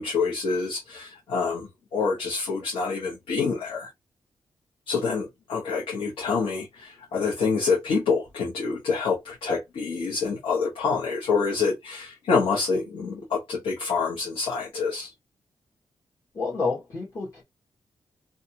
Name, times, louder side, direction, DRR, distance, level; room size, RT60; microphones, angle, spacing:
voice 1, 0.0-3.9 4.9-15.1, left 4 dB, 90° left, 0.9 m, -27 dB
voice 2, 16.3-17.4, left 4 dB, 35° left, 1.2 m, -29 dB
2.6 x 2.4 x 2.8 m
wide cardioid pair, 160°, 9 cm